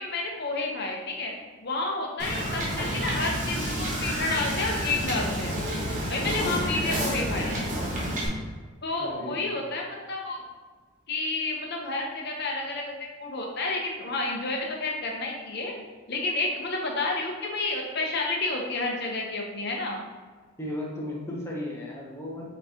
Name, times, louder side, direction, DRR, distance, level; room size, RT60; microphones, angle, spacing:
voice 1, 0.0-1.3 1.6-5.5 6.1-7.5 8.8-10.4 11.1-12.9 13.2-15.7 16.1-20.0, left 3 dB, 55° left, 0 dB, 0.8 m, -30 dB
Wind / Boat Water vehicle, 2.2-8.3, right 1 dB, 40° right, 1.0 m, -29 dB
voice 2, 6.2-6.7 9.0-9.5 20.6-22.4, left 1 dB, 15° left, -3 dB, 0.8 m, -34 dB
5.6 x 3.1 x 2.8 m, 1.4 s
head